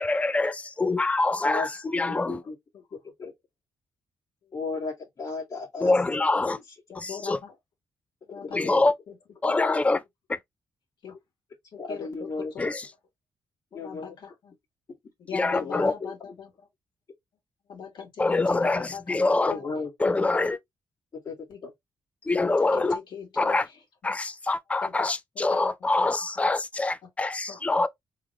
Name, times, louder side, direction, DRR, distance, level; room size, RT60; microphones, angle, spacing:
voice 1, 0.0-2.4 5.8-6.6 6.9-7.4 8.5-9.0 9.4-10.0 10.3-10.4 12.6-12.9 15.3-15.9 18.2-19.6 20.0-20.6 22.2-23.0 23.4-23.7 24.0-27.9, left 3 dB, 15° left, 0.4 m, -25 dB
voice 2, 2.1-2.5 3.2-3.3 4.5-5.9 6.5-6.6 8.6-8.9 11.8-12.7 13.7-14.1 15.5-16.1 19.5-20.1 21.2-21.4 21.6-21.7, left 4 dB, 45° left, 1.8 m, -34 dB
voice 3, 6.9-7.5 8.3-8.8 11.0-11.1 11.7-12.6 13.7-14.5 15.3-16.5 17.7-19.6 21.5-21.6 22.4-23.6 24.8-24.9 25.5-26.1 27.5-27.6, left 7 dB, 65° left, 2.2 m, -41 dB
3.8 x 3.1 x 3.1 m
wide cardioid pair, 150°, 8 cm